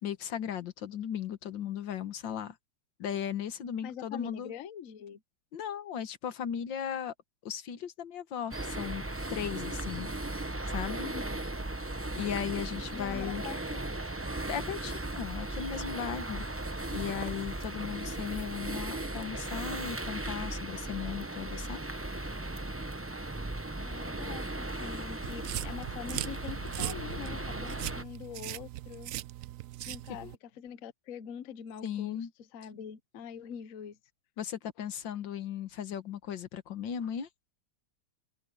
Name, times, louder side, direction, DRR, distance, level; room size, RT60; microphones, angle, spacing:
voice 1, 0.0-2.6 3.0-4.5 5.5-7.1 7.5-9.0 9.3-10.1 10.7-11.1 12.2-13.4 14.5-16.5 16.9-21.8 30.2-30.3 31.8-32.3 34.4-37.3, left 9 dB, 85° left, 1.9 m, -36 dB
voice 2, 3.8-5.2 11.0-11.4 12.9-13.8 23.8-29.1 29.9-34.0, left 8 dB, 55° left, 1.2 m, -44 dB
sound 1, 8.5-28.0, right 2 dB, 15° right, 0.4 m, -37 dB
sound 2, 14.3-16.4, right 8 dB, 35° left, 7.5 m, -57 dB
sound 3, 25.2-30.4, right 14 dB, 80° right, 0.7 m, -39 dB
omnidirectional pair, 2.0 m